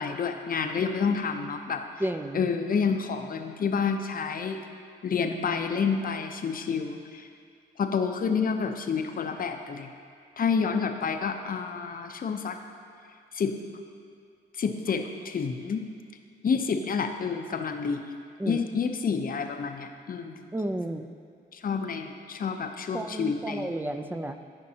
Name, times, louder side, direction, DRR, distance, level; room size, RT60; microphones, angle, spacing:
voice 1, 0.0-1.8 2.3-4.6 5.0-7.3 7.8-9.9 10.4-12.6 13.3-13.6 14.6-15.8 16.4-18.0 18.5-20.4 21.5-23.7, left 5 dB, 50° left, 5 dB, 0.7 m, -29 dB
voice 2, 2.0-2.5 18.4-18.6 20.5-21.1 22.9-24.4, right 1 dB, 10° right, 8 dB, 0.4 m, -32 dB
13.5 x 5.2 x 2.8 m, 2.2 s
cardioid pair, 75°, 19 cm